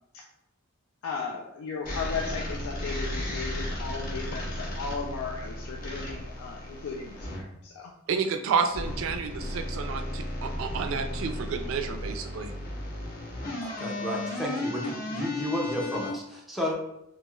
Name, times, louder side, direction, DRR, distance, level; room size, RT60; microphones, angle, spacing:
voice 1, 1.0-7.9, left 4 dB, 90° left, 0 dB, 0.4 m, -36 dB
sound 1, 1.8-7.4 8.7-16.1, left 1 dB, 45° left, 0.8 m, -34 dB
voice 2, 8.1-12.5, right 5 dB, 65° right, 7 dB, 0.3 m, -30 dB
voice 3, 13.6-16.7, equal, ahead, -3 dB, 0.4 m, -32 dB
3.0 x 2.7 x 2.3 m, 0.81 s
head